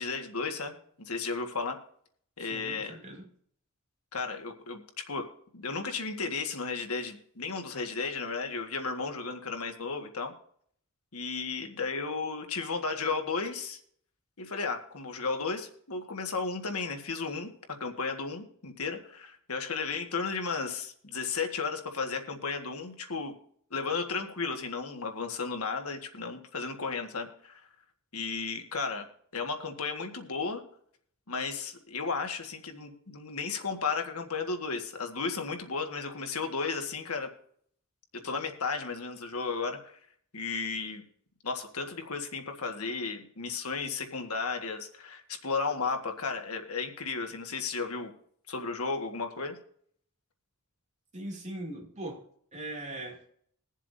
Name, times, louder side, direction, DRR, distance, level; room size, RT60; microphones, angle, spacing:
voice 1, 0.0-1.8 2.4-2.9 4.1-5.3 5.5-10.3 11.1-13.8 14.4-17.5 17.8-23.3 23.7-27.6 28.1-29.1 29.3-30.6 31.3-37.3 38.2-39.9 40.3-41.0 41.4-48.1 48.5-49.6, left 4 dB, 75° left, 5 dB, 1.7 m, -34 dB
voice 2, 2.4-3.2 51.1-52.2 52.5-53.2, right 1 dB, 35° right, 0 dB, 2.7 m, -40 dB
22.0 x 7.4 x 2.7 m, 0.62 s
head